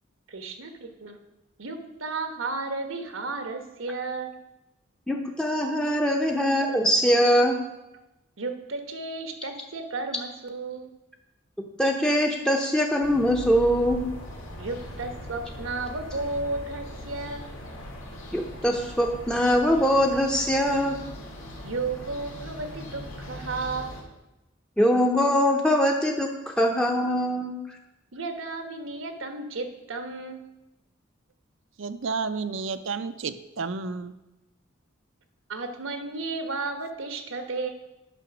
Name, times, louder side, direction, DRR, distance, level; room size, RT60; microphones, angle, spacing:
voice 1, 0.3-1.2 1.6-4.4 5.9-6.0 8.4-10.9 14.6-17.5 21.6-23.9 28.1-30.5 35.5-37.7, right 3 dB, 85° right, 6 dB, 1.1 m, -33 dB
voice 2, 5.1-7.6 11.8-14.0 18.3-21.0 24.8-27.5, equal, 5° left, 1 dB, 0.6 m, -22 dB
sound 1, 13.0-24.0, left 1 dB, 90° left, 1.8 m, -40 dB
voice 3, 31.8-34.1, right 4 dB, 70° right, 11 dB, 0.5 m, -31 dB
9.1 x 5.9 x 6.0 m, 0.96 s
head